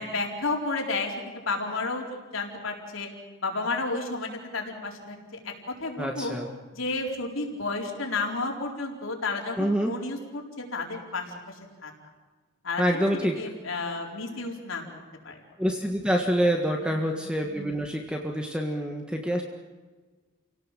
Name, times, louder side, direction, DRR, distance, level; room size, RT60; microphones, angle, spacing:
voice 1, 0.0-3.1 3.4-5.4 5.7-6.3 6.7-11.3 11.8-11.9 12.6-13.1 13.4-14.8 15.2-15.4 16.8-17.1, left 3 dB, 90° left, 0 dB, 4.5 m, -32 dB
voice 2, 6.0-6.5 9.6-9.9 12.8-13.4 15.6-19.4, equal, 5° right, 2 dB, 1.6 m, -26 dB
29.0 x 17.5 x 7.6 m, 1.3 s
head